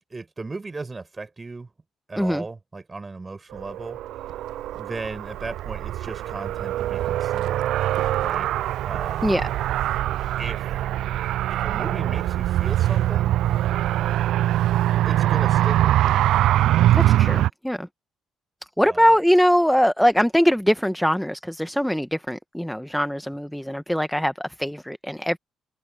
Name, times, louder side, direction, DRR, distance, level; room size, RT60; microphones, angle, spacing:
voice 1, 0.1-1.7 2.1-4.2 4.7-7.7 8.2-8.5 8.8-9.4 10.4-10.7 11.5-13.3 15.0-16.2 18.8-19.2, right 3 dB, 25° right, 8.0 m, -36 dB
Car, 3.5-17.5, right 13 dB, 65° right, 0.5 m, -23 dB
voice 2, 16.9-17.9 18.8-25.4, equal, ahead, 1.7 m, -22 dB
figure-of-eight pair, 45°, 0 cm